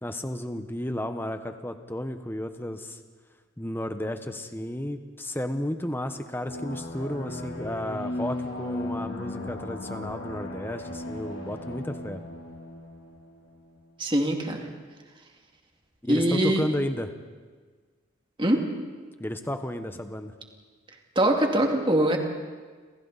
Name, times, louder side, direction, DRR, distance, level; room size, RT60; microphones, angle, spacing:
voice 1, 0.0-3.0 3.6-12.2 16.0-17.1 19.2-20.3, left 1 dB, 10° left, 7 dB, 1.2 m, -33 dB
sound 1, 6.4-13.8, left 1 dB, 80° left, 3.5 m, -36 dB
voice 2, 14.0-14.7 16.1-16.6 18.4-18.6 21.2-22.2, right 1 dB, 25° right, 2 dB, 2.4 m, -23 dB
29.0 x 27.5 x 4.2 m, 1.5 s
head